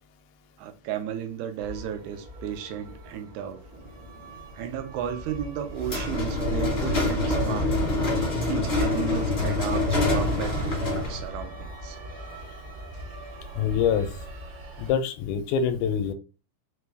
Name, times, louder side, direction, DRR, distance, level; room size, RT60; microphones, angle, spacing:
voice 1, 0.6-3.6 4.5-7.7 8.4-12.0, right 9 dB, 80° right, 2.0 m, -34 dB
sound 1, 1.6-14.9, right 1 dB, 65° right, 1.3 m, -40 dB
sound 2, 5.8-11.3, left 2 dB, 45° left, 0.8 m, -25 dB
voice 2, 13.6-14.1 14.8-16.1, left 7 dB, 85° left, 2.0 m, -25 dB
5.0 x 2.2 x 3.2 m
omnidirectional pair, 3.5 m